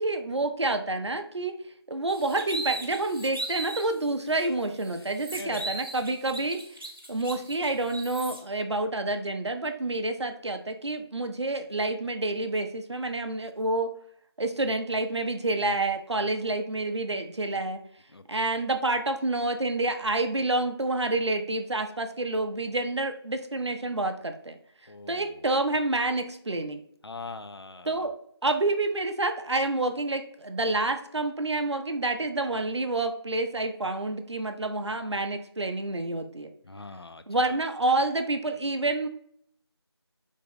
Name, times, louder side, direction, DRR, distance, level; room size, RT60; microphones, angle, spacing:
voice 1, 0.0-1.6 1.9-6.6 7.1-13.9 14.4-17.8 18.3-24.6 25.1-26.8 27.9-28.1 28.4-36.5 37.3-39.1, right 2 dB, 90° right, 6 dB, 0.5 m, -28 dB
sound 1, 2.1-3.9 4.4-4.5 4.8-8.4, right 2 dB, 55° right, 0.8 m, -37 dB
voice 2, 4.4-4.7 5.0-5.1 5.4-5.7 18.1-18.3 24.9-25.5 27.0-28.1 36.6-37.6, left 3 dB, 65° left, 10 dB, 0.4 m, -42 dB
3.4 x 2.1 x 3.9 m, 0.67 s
figure-of-eight pair, 175°, 14 cm